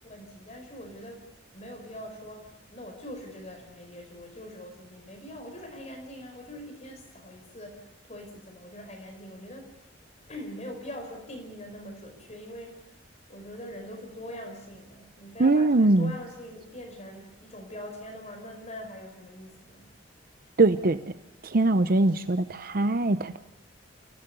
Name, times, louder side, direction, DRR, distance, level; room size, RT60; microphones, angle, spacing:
voice 1, 0.0-1.2 1.5-13.0 13.3-19.9, equal, 40° left, 3 dB, 5.3 m, -43 dB
voice 2, 15.4-16.1 20.6-21.0 21.4-23.4, right 2 dB, 50° right, 11 dB, 0.8 m, -22 dB
29.0 x 17.0 x 7.0 m, 1.0 s
head